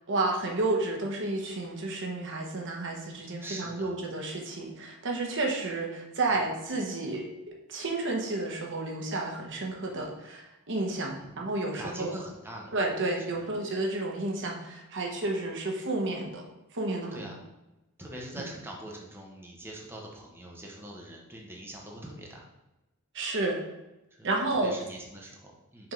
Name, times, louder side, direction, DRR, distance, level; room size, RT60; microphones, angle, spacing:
voice 1, 0.1-7.3 7.7-12.1 12.7-16.4 16.7-17.2 23.1-23.6 24.2-24.7, right 2 dB, 55° right, 0 dB, 1.1 m, -31 dB
voice 2, 3.4-4.0 6.3-6.4 11.1-11.3 11.8-12.7 13.2-13.3 17.1-17.4 18.0-22.5 24.2-25.9, right 1 dB, 10° right, -2 dB, 1.0 m, -43 dB
5.9 x 3.6 x 5.2 m, 0.98 s
head